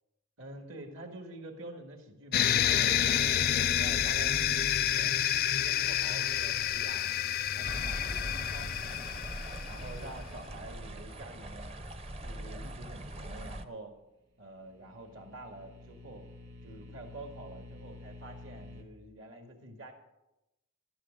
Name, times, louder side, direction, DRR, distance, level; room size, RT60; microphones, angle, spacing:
voice 1, 0.4-5.2 5.5-7.1 7.5-9.0 9.6-11.8 12.2-13.9 14.4-16.3 16.6-19.9, right 1 dB, 65° right, 3 dB, 2.3 m, -47 dB
sound 1, 2.3-9.9, left 10 dB, 45° left, 0.4 m, -29 dB
sound 2, 7.6-13.7, right 1 dB, 30° right, 0.7 m, -41 dB
sound 3, 14.3-18.8, left 2 dB, 50° right, 2.5 m, -50 dB
12.5 x 10.5 x 6.8 m, 0.94 s
head